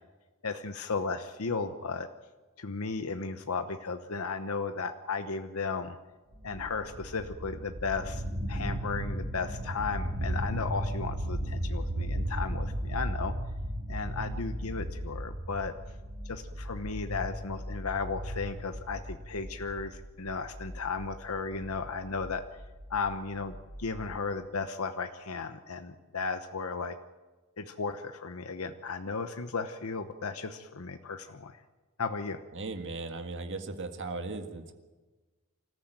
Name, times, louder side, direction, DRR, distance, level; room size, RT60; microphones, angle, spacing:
voice 1, 0.4-2.1 2.6-6.0 6.4-8.2 8.5-13.3 13.9-15.7 16.2-22.4 22.9-27.0 27.6-31.6 32.0-32.4, left 4 dB, 75° left, 8 dB, 1.0 m, -35 dB
sound 1, 6.3-24.2, equal, 85° right, 4.3 m, -36 dB
voice 2, 32.5-34.7, right 3 dB, 60° right, 6 dB, 1.7 m, -37 dB
25.5 x 14.5 x 9.0 m, 1.3 s
head